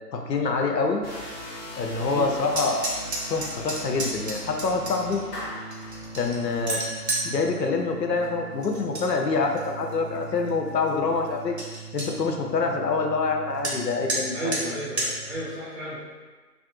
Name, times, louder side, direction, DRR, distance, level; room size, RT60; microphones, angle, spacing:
voice 1, 0.1-1.0 1.8-2.8 3.3-5.2 6.2-6.8 7.2-11.6 11.9-14.5, left 4 dB, 85° left, 2 dB, 0.7 m, -26 dB
sound 1, 1.0-15.4, right 2 dB, 40° left, 0.7 m, -41 dB
voice 2, 2.0-2.4 4.4-4.5 14.3-16.0, equal, 10° right, -23 dB, 1.2 m, -33 dB
sound 2, 2.5-5.2 5.7-7.3 8.6-9.1 9.4-9.9 10.5-10.6 10.9-11.0 11.3-11.4 11.6-12.1 13.6-13.8 14.1-14.2 14.5-14.6 15.0-15.1, right 2 dB, 45° right, 0.6 m, -30 dB
Clapping, 5.3-6.0, left 1 dB, 65° left, 1.1 m, -37 dB
3.3 x 2.5 x 2.5 m, 1.4 s
figure-of-eight pair, 155°, 48 cm